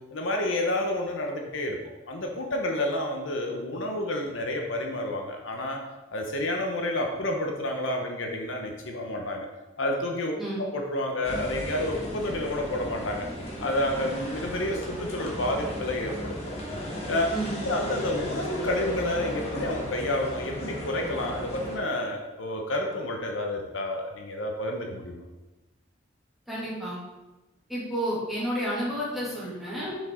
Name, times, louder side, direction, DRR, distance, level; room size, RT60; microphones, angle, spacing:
voice 1, 0.1-1.8 2.1-5.8 6.1-9.5 9.8-10.3 10.7-13.3 13.6-16.5 17.1-17.3 17.6-25.2, left 1 dB, 75° left, 2 dB, 0.9 m, -29 dB
sound 1, 11.2-21.8, equal, 30° left, 1.4 m, -35 dB
voice 2, 17.3-17.6 26.5-27.0 27.7-30.0, equal, ahead, -8 dB, 2.3 m, -31 dB
6.5 x 5.3 x 3.7 m, 1.1 s
head